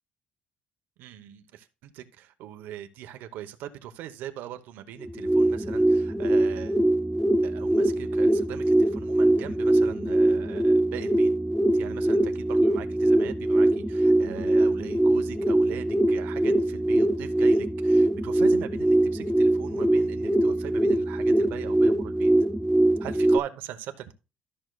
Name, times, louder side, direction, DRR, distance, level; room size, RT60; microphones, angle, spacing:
voice 1, 1.0-6.8 7.4-11.3 11.7-22.3 23.0-24.1, right 11 dB, 75° right, 1.0 m, -41 dB
sound 1, 5.0-23.4, right 1 dB, ahead, 0.4 m, -22 dB
13.0 x 6.4 x 2.4 m
cardioid pair, 150°, 3 cm